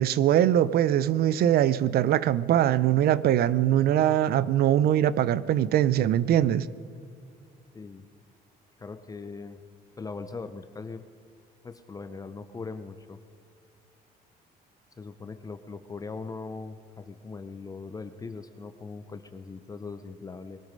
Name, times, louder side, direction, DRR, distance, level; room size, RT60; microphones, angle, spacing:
voice 1, 0.0-6.7, right 11 dB, 65° right, 18 dB, 0.6 m, -22 dB
voice 2, 8.8-9.6 10.0-11.0 11.6-13.2 15.0-20.6, left 4 dB, 20° left, 10 dB, 0.7 m, -40 dB
21.5 x 13.0 x 5.3 m, 2.3 s
cardioid pair, 110°, 17 cm